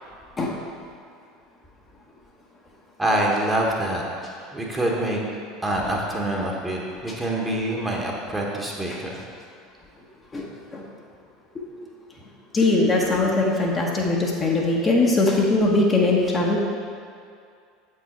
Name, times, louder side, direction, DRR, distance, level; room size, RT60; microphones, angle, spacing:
voice 1, 3.0-4.0 4.4-5.2 5.6-9.2, right 1 dB, 10° right, -2 dB, 1.2 m, -25 dB
voice 2, 10.3-10.8 11.5-11.6 12.5-16.6, left 2 dB, 25° left, -2 dB, 1.0 m, -21 dB
7.9 x 4.7 x 4.3 m, 2.3 s
figure-of-eight pair, 70°, 0 cm